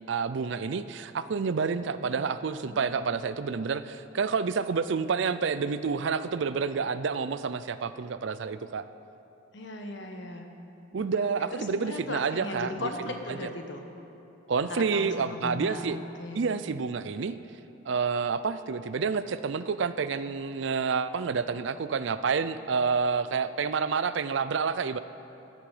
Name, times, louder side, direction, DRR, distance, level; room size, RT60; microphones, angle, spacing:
voice 1, 0.1-8.8 10.9-12.7 14.5-16.0 16.3-17.4 17.9-25.0, right 5 dB, 65° right, 13 dB, 0.4 m, -29 dB
voice 2, 2.6-3.2 9.5-10.5 11.0-13.8 14.6-16.6, left 2 dB, 60° left, 4 dB, 1.2 m, -38 dB
14.0 x 12.0 x 5.0 m, 2.8 s
head